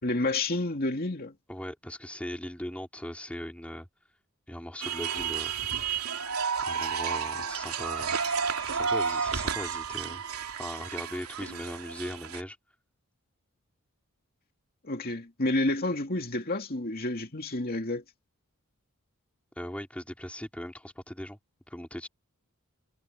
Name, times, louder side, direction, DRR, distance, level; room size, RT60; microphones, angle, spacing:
voice 1, 0.0-1.4 14.8-18.0, left 2 dB, 45° left, 2.4 m, -29 dB
voice 2, 1.5-3.9 4.5-5.5 6.6-8.2 8.7-10.2 10.6-12.6 19.6-21.4 21.7-22.1, equal, 5° left, 3.9 m, -39 dB
sound 1, 4.8-12.4, right 6 dB, 90° right, 3.0 m, -31 dB
head